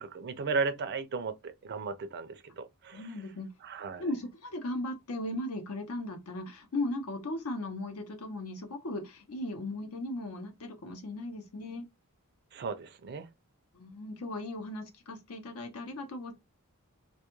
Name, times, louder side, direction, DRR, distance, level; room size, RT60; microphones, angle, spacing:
voice 1, 0.0-3.1 3.6-4.1 12.5-13.3, right 4 dB, 50° right, 0.4 m, -35 dB
voice 2, 2.9-3.5 4.0-11.9 13.7-16.3, left 2 dB, 70° left, 0.7 m, -37 dB
2.3 x 2.1 x 2.9 m
head